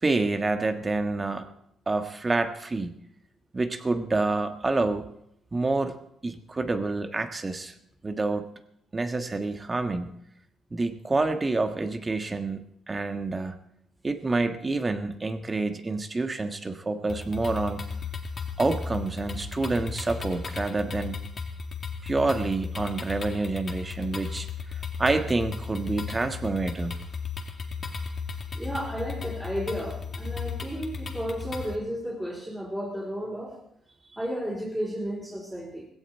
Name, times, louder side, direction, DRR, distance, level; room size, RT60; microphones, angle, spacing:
voice 1, 0.0-1.5 1.9-2.9 3.5-5.1 5.5-6.0 6.2-7.7 8.0-8.5 8.9-10.1 10.7-13.6 14.0-17.9 18.6-21.2 22.0-26.9, right 3 dB, 25° right, 7 dB, 1.5 m, -28 dB
sound 1, 17.1-31.7, left 5 dB, 40° left, 2.1 m, -35 dB
voice 2, 28.5-33.6 34.2-35.9, equal, 5° right, -5 dB, 4.4 m, -33 dB
17.0 x 16.0 x 4.5 m, 0.76 s
cardioid pair, 90°, 0 cm